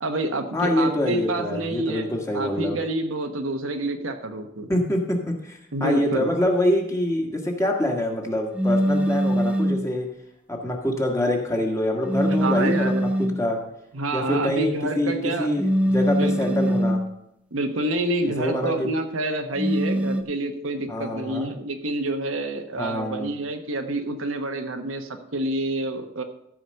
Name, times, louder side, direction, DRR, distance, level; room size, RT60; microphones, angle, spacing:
voice 1, 0.0-4.7 5.7-6.3 12.4-13.3 13.9-15.5 16.2-16.9 17.5-26.2, right 1 dB, 80° right, 5 dB, 1.1 m, -28 dB
voice 2, 0.5-2.8 4.7-10.1 10.5-13.1 13.4-13.6 14.1-15.1 15.4-17.0 18.2-18.9 20.9-21.5 22.8-23.3, left 1 dB, 15° left, 1 dB, 1.6 m, -25 dB
sound 1, 8.5-9.9 12.0-13.5 15.6-17.1 19.6-20.2, equal, 5° right, 0.6 m, -23 dB
14.0 x 4.9 x 6.6 m, 0.80 s
head